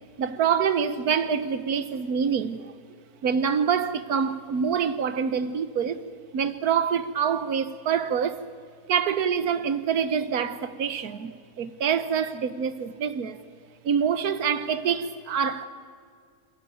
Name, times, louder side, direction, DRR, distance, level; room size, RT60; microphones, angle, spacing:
voice 1, 0.2-2.7 3.2-6.0 6.3-8.4 8.9-13.4 13.8-15.7, right 7 dB, 75° right, 1.5 m, -26 dB
28.0 x 16.0 x 9.4 m
omnidirectional pair, 1.6 m